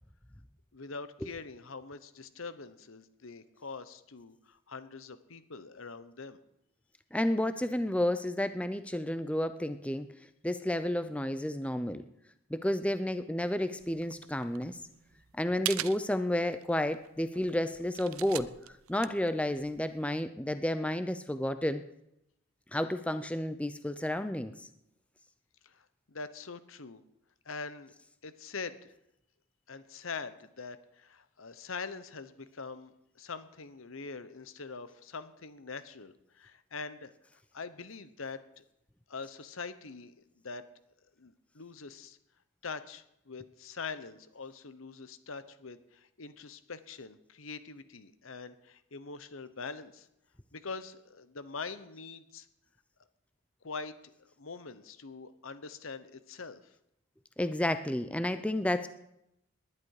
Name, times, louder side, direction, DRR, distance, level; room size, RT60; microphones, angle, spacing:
voice 1, 0.7-6.4 25.6-27.0 27.4-27.9 28.2-28.9 29.7-38.6 39.1-40.1 40.4-40.6 41.2-42.2 42.6-50.1 50.5-52.5 53.6-54.1 54.4-56.7, left 4 dB, 75° left, 13 dB, 1.0 m, -43 dB
voice 2, 7.1-10.1 10.4-12.0 12.5-14.8 15.4-18.5 18.9-21.8 22.7-24.6 57.4-58.9, left 1 dB, 5° left, 11 dB, 0.5 m, -31 dB
sound 1, 13.8-20.2, right 14 dB, 90° right, 0.6 m, -42 dB
19.5 x 11.0 x 4.8 m, 0.82 s
head